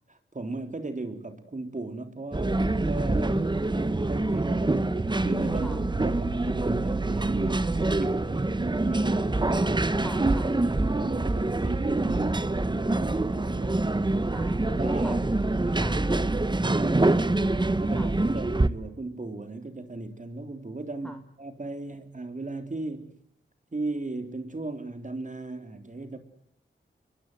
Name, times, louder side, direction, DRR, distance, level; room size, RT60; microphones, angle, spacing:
voice 1, 0.1-3.4 3.7-4.9 5.2-10.0 10.4-13.9 14.2-23.1 23.7-26.2, right 2 dB, 40° right, 7 dB, 3.5 m, -36 dB
sound 1, 2.3-18.7, right 2 dB, 20° right, 1.2 m, -26 dB
voice 2, 3.2-3.7 5.6-5.8 10.0-10.5 14.2-15.3 15.8-16.0 18.0-18.1 21.0-21.2, equal, 5° left, 6 dB, 2.0 m, -40 dB
sound 2, 5.2-9.3, right 5 dB, 55° right, 3.7 m, -36 dB
29.0 x 23.0 x 8.0 m, 0.71 s
wide cardioid pair, 90°, 20 cm